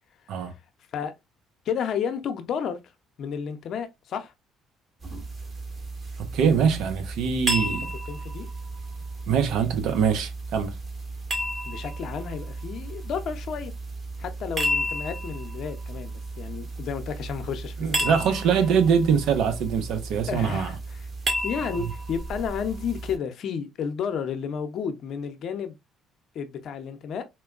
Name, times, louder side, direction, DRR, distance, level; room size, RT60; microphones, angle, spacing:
voice 1, 1.7-2.8 3.2-4.3 7.6-7.7 8.1-8.5 11.6-13.7 14.2-18.1 18.8-18.9 20.3-21.0 21.4-25.8 26.3-27.2, left 7 dB, 60° left, 0.6 m, -32 dB
sound 1, 5.0-23.2, right 1 dB, 35° right, 1.5 m, -33 dB
voice 2, 6.2-7.9 9.3-10.7 17.8-20.7, right 7 dB, 75° right, 0.7 m, -23 dB
4.3 x 2.2 x 2.4 m
supercardioid pair, 75°, 0 cm